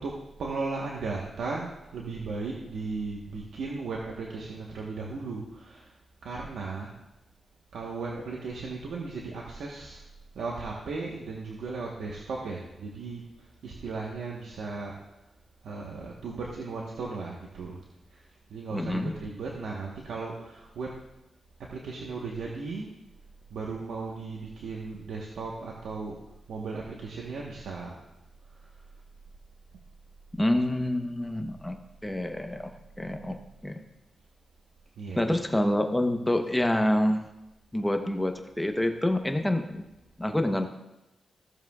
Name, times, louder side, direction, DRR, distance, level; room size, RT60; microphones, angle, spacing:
voice 1, 0.0-5.9 6.2-6.9 7.7-10.0 10.3-14.9 15.6-17.8 18.1-18.2 18.5-20.9 21.7-22.9 23.5-26.2 26.5-28.0 35.0-35.5, right 4 dB, 85° right, -3 dB, 1.2 m, -36 dB
voice 2, 18.7-19.1 30.4-33.8 35.2-37.2 37.7-39.9 40.2-40.7, left 1 dB, 10° left, 6 dB, 0.9 m, -27 dB
16.0 x 7.4 x 2.4 m, 0.94 s
cardioid pair, 70°, 0 cm